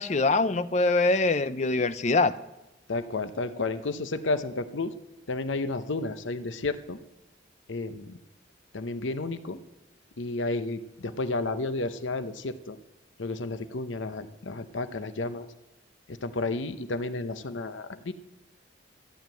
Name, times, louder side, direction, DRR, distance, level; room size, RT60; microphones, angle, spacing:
voice 1, 0.0-2.3, left 3 dB, 35° left, 13 dB, 0.5 m, -23 dB
voice 2, 2.9-4.9 5.3-7.0 7.7-8.2 8.7-9.6 10.2-12.8 13.2-15.5 16.1-18.1, left 3 dB, 80° left, 11 dB, 0.8 m, -32 dB
14.0 x 7.3 x 9.1 m, 0.95 s
head